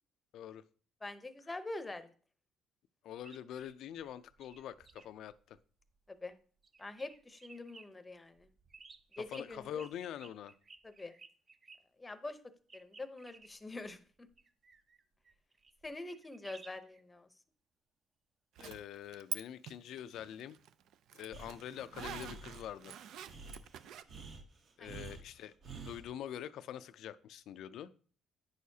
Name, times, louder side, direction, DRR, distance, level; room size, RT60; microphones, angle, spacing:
voice 1, 0.3-0.6 3.0-5.6 9.3-10.5 18.6-20.6 21.1-22.9 24.8-27.9, left 10 dB, 70° left, 13 dB, 0.4 m, -45 dB
voice 2, 1.0-2.1 6.1-6.4 6.8-8.5 9.2-9.8 10.8-11.1 12.0-12.4 12.7-14.1 15.8-17.3 24.8-25.0, left 2 dB, 15° left, 10 dB, 0.7 m, -45 dB
sound 1, 3.2-6.3 6.6-7.9 8.3-11.8 12.7-17.0 22.8-22.9, right 4 dB, 30° right, 0.6 m, -58 dB
Zipper (clothing), 18.6-19.4 19.7-24.0, right 10 dB, 75° right, 0.4 m, -45 dB
Breathing, 21.3-26.1, right 3 dB, 50° right, 1.1 m, -50 dB
9.2 x 6.4 x 2.7 m, 0.43 s
cardioid pair, 125°, 0 cm